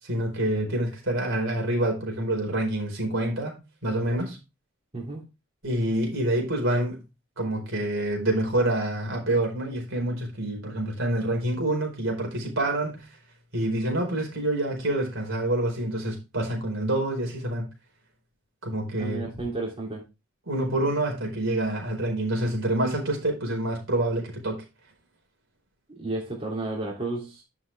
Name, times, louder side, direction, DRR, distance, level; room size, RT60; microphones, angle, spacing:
voice 1, 0.0-4.4 5.6-7.0 7.4-13.0 13.5-17.7 18.6-19.2 20.5-24.6, right 1 dB, 60° right, 4.6 m, -27 dB
voice 2, 19.0-20.0 26.0-27.4, right 2 dB, 30° right, 3.2 m, -32 dB
10.5 x 6.3 x 3.4 m
head